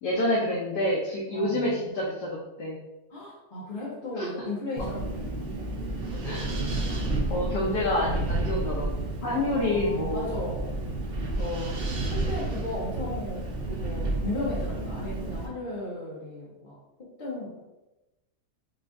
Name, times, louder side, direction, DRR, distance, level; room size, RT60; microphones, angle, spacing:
voice 1, 0.0-2.8 4.2-4.3 4.8-4.9 6.2-6.5 7.3-8.9 9.2-10.3 11.4-11.7, left 1 dB, 75° left, -4 dB, 1.3 m, -28 dB
voice 2, 1.3-1.8 3.1-5.6 6.1-7.1 9.3-10.7 11.6-11.8 12.1-17.6, left 1 dB, 45° left, -6 dB, 0.6 m, -36 dB
Wind, 4.8-15.5, right 2 dB, 75° right, 0.5 m, -31 dB
5.3 x 2.4 x 2.5 m, 0.98 s
omnidirectional pair, 1.8 m